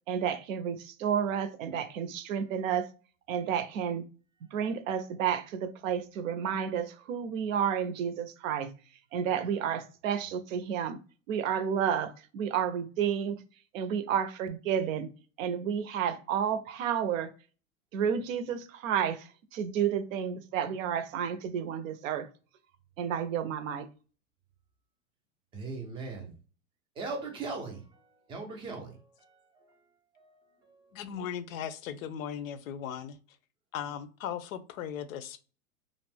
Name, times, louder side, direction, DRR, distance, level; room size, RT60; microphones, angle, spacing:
voice 1, 0.1-2.9 3.3-4.0 4.5-8.7 9.1-11.0 11.3-13.4 13.7-15.1 15.4-17.3 17.9-22.3 23.0-23.9, right 8 dB, 70° right, 0.6 m, -31 dB
voice 2, 25.5-26.3 27.0-29.8 30.2-31.0, right 3 dB, 15° right, 0.4 m, -40 dB
voice 3, 30.9-33.2 33.7-35.4, left 9 dB, 75° left, 0.5 m, -37 dB
2.5 x 2.0 x 3.3 m
supercardioid pair, 140°, 41 cm